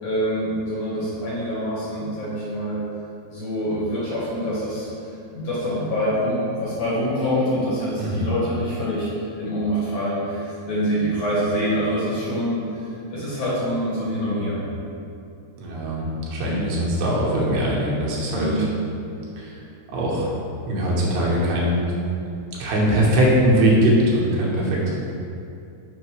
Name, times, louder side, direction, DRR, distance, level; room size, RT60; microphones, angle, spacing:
voice 1, 0.0-2.8 3.3-4.9 5.3-9.1 9.4-14.6 16.5-16.7 18.3-18.7, equal, 65° left, -9 dB, 2.3 m, -25 dB
voice 2, 8.0-8.3 15.6-18.5 19.4-19.5 19.9-20.3 20.7-21.9 22.6-25.0, right 1 dB, 80° right, -5 dB, 2.9 m, -21 dB
6.2 x 5.3 x 3.1 m, 2.6 s
omnidirectional pair, 4.6 m